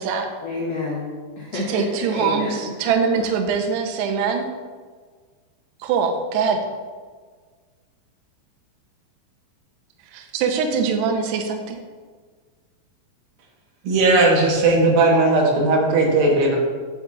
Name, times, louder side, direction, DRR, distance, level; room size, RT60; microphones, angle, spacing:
voice 1, 0.4-2.7 3.1-3.2, left 3 dB, 80° left, -6 dB, 1.9 m, -29 dB
voice 2, 1.5-4.4 5.8-6.6 10.1-11.8, right 6 dB, 90° right, 3 dB, 2.4 m, -23 dB
voice 3, 13.8-16.6, right 2 dB, 70° right, -2 dB, 2.4 m, -17 dB
8.6 x 6.8 x 2.4 m, 1.5 s
omnidirectional pair, 5.5 m